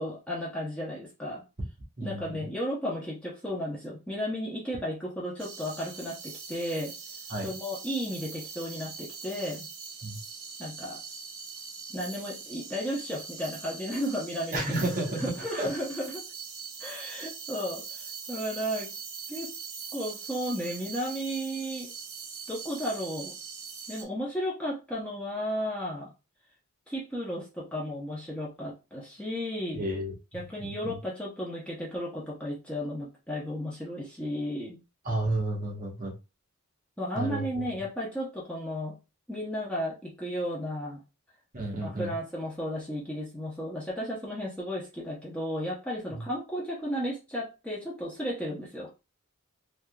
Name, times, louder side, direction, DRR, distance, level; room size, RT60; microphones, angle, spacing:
voice 1, 0.0-1.4 2.0-6.9 7.4-9.7 10.6-11.0 11.9-14.9 15.1-16.2 16.8-18.9 19.3-19.5 19.9-21.9 22.5-23.3 23.9-26.1 26.9-29.9 30.3-34.8 37.0-39.0 39.3-41.0 41.8-48.9, equal, 5° left, -5 dB, 0.7 m, -34 dB
voice 2, 2.0-2.5 7.3-7.5 10.0-10.2 14.5-15.7 29.7-30.1 30.6-30.9 35.0-36.1 37.1-37.6 41.5-42.1 46.1-46.3, right 1 dB, 35° right, -2 dB, 1.0 m, -32 dB
sound 1, 5.4-24.0, right 5 dB, 75° right, 0.9 m, -42 dB
3.5 x 2.8 x 2.3 m, 0.28 s
head